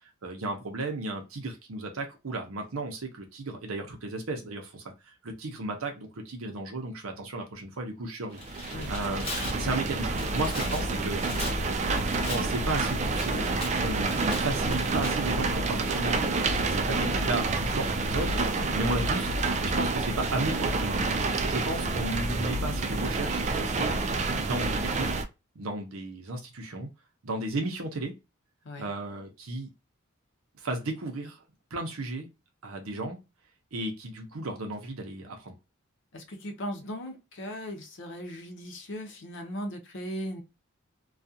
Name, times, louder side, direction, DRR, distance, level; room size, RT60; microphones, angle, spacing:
voice 1, 0.2-4.8 5.2-9.2 9.6-11.2 12.3-16.2 16.5-19.3 19.6-21.1 21.4-23.9 24.3-25.1 25.6-26.9 27.2-28.1 28.8-29.7 30.6-31.4 31.7-32.3 32.6-33.2 33.7-35.5, right 2 dB, 90° right, 0.7 m, -34 dB
Tearing, 8.2-15.1, left 3 dB, 30° left, 0.8 m, -41 dB
sound 1, 8.3-25.2, right 3 dB, 35° right, 0.3 m, -28 dB
sound 2, 18.9-22.1, equal, 55° right, 0.9 m, -47 dB
voice 2, 36.1-40.4, equal, 65° left, 0.6 m, -38 dB
2.4 x 2.3 x 2.6 m
head